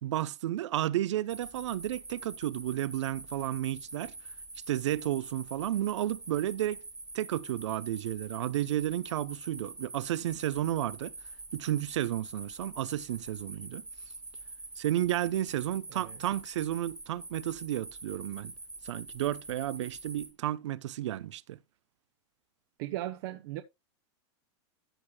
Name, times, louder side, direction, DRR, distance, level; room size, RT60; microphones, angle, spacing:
voice 1, 0.0-4.1 4.7-6.8 7.1-11.1 11.5-13.8 14.8-18.5 18.8-21.6, right 13 dB, 85° right, 0.7 m, -32 dB
sound 1, 1.3-20.3, right 3 dB, 5° right, 1.2 m, -45 dB
voice 2, 22.8-23.6, right 15 dB, 50° right, 0.8 m, -37 dB
13.5 x 6.5 x 2.3 m
supercardioid pair, 160°, 15 cm